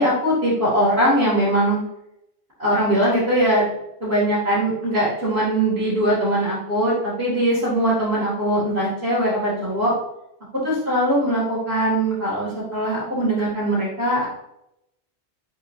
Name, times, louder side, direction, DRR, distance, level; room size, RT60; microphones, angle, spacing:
voice 1, 0.0-1.8 2.6-3.6 4.0-9.9 10.6-14.3, right 1 dB, 70° right, -11 dB, 3.3 m, -21 dB
8.2 x 6.7 x 2.8 m, 0.82 s
omnidirectional pair, 1.1 m